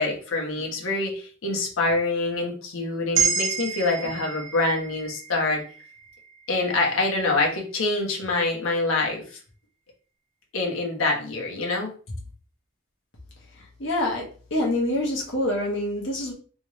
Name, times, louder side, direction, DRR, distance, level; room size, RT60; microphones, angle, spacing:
voice 1, 0.0-5.6 6.5-9.4 10.5-12.2, left 2 dB, 85° left, -1 dB, 1.2 m, -25 dB
sound 1, 3.1-7.4, right 6 dB, 70° right, 1.0 m, -30 dB
voice 2, 13.8-16.3, left 1 dB, 60° left, -2 dB, 1.3 m, -26 dB
3.4 x 3.1 x 3.1 m, 0.40 s
head